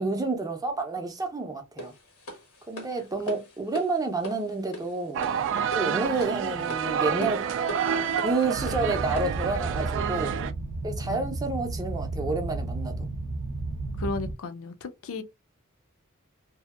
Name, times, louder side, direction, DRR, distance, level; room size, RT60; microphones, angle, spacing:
voice 1, 0.0-1.9 2.7-5.2 5.7-7.4 8.2-10.3 10.8-13.1, right 3 dB, 15° right, 0.6 m, -29 dB
sound 1, 1.8-9.5, equal, 90° left, 1.1 m, -40 dB
sound 2, 5.1-10.5, right 7 dB, 60° right, 0.3 m, -29 dB
sound 3, 8.5-14.3, right 2 dB, 90° right, 0.6 m, -33 dB
voice 2, 14.0-15.2, left 3 dB, 65° left, 0.5 m, -34 dB
2.7 x 2.4 x 2.4 m
head